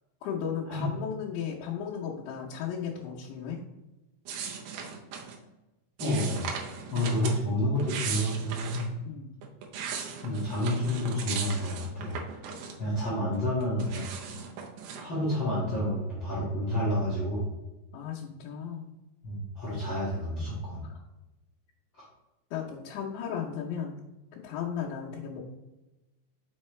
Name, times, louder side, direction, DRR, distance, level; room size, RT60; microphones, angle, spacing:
voice 1, 0.2-3.6 9.0-9.3 17.9-18.9 20.8-21.0 22.5-24.0 24.3-25.4, left 7 dB, 90° left, -7 dB, 3.2 m, -35 dB
sound 1, 4.3-5.4 6.0-7.4 7.7-8.9 9.4-13.0 13.3-15.1, right 6 dB, 75° right, 2.5 m, -37 dB
voice 2, 6.0-6.4 6.9-8.9 10.2-12.5 12.8-14.1 15.0-17.5 19.2-20.8 22.0-22.1, left 1 dB, 60° left, -7 dB, 1.2 m, -29 dB
6.4 x 5.5 x 3.2 m, 1.0 s
omnidirectional pair, 5.0 m